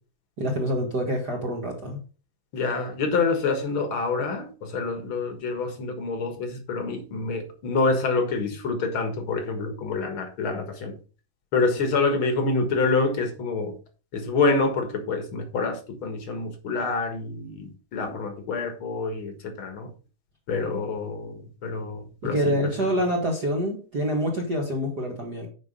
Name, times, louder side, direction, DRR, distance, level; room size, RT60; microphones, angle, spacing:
voice 1, 0.4-2.0 22.2-25.5, equal, 50° right, 1.2 m, -26 dB
voice 2, 2.5-11.0 11.5-13.8 14.1-19.9 20.5-22.6, left 3 dB, 50° left, 1.7 m, -27 dB
9.2 x 5.2 x 5.2 m
omnidirectional pair, 4.3 m